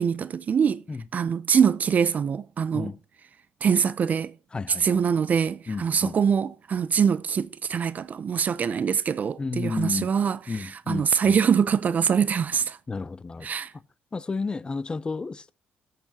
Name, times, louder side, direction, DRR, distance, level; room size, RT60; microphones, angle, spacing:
voice 1, 0.0-0.8 1.1-2.9 3.6-4.3 4.7-12.8 13.4-13.7, right 7 dB, 45° right, 0.4 m, -24 dB
voice 2, 4.5-5.0 5.7-6.2 9.4-10.1 10.5-11.4 12.9-13.5 14.1-15.5, left 4 dB, 25° left, 0.4 m, -32 dB
15.5 x 6.6 x 2.8 m
cardioid pair, 90°, 4 cm